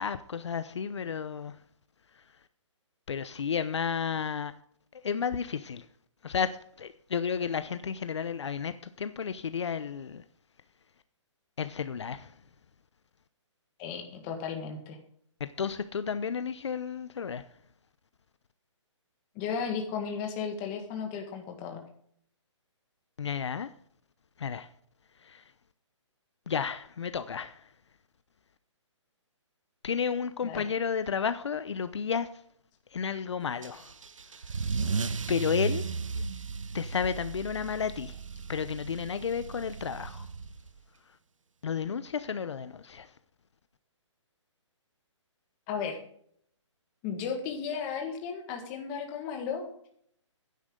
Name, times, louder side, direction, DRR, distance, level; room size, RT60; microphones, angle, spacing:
voice 1, 0.0-1.5 3.1-4.5 5.0-5.8 6.2-8.7 9.0-10.2 11.6-12.3 15.4-17.4 23.2-23.7 24.4-24.7 25.2-25.4 26.5-27.6 29.8-32.3 32.9-33.9 35.3-35.9 36.7-38.2 38.5-40.3 41.6-43.1, left 6 dB, 65° left, 0.8 m, -32 dB
voice 2, 13.8-15.0 19.4-21.8 30.4-30.7 45.7-46.0 47.0-49.7, left 6 dB, 20° left, 1.8 m, -34 dB
Car / Engine starting / Accelerating revving vroom, 33.6-40.8, right 4 dB, 85° right, 1.1 m, -35 dB
14.5 x 10.5 x 3.8 m
hypercardioid pair, 170°, 16 cm